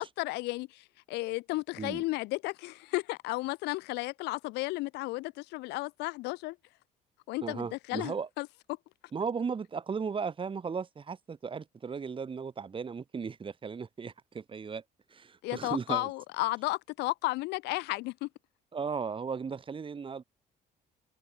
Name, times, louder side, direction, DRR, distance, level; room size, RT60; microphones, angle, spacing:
voice 1, 0.0-6.6 7.3-8.5 15.4-18.3, left 21 dB, 85° left, 0.5 m, -33 dB
voice 2, 7.4-8.3 9.1-14.8 15.1-16.1 18.7-20.2, right 5 dB, 30° right, 2.5 m, -36 dB
open air
cardioid pair, 110°, 17 cm